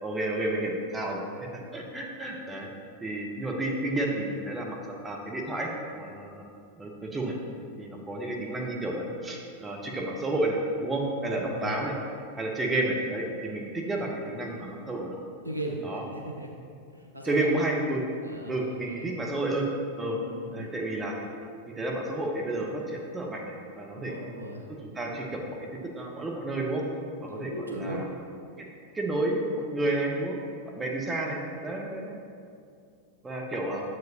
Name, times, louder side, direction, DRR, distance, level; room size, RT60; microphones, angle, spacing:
voice 1, 0.0-1.2 1.5-2.7 3.0-5.7 6.0-6.5 6.8-7.3 7.8-11.9 12.4-15.2 15.8-16.0 17.2-18.0 18.5-19.7 20.0-20.2 20.5-21.2 21.7-24.2 24.7-26.8 27.2-28.1 28.6-28.7 28.9-30.4 30.7-32.2 33.2-33.8, right 2 dB, 15° right, -1 dB, 0.8 m, -31 dB
voice 2, 11.2-11.8 15.4-15.8 16.1-16.5 16.9-17.5 18.2-19.0 20.1-20.7 23.9-24.7 27.3-28.0, equal, 85° right, 0 dB, 0.6 m, -37 dB
7.6 x 4.8 x 2.9 m, 2.4 s
figure-of-eight pair, 90°, 0 cm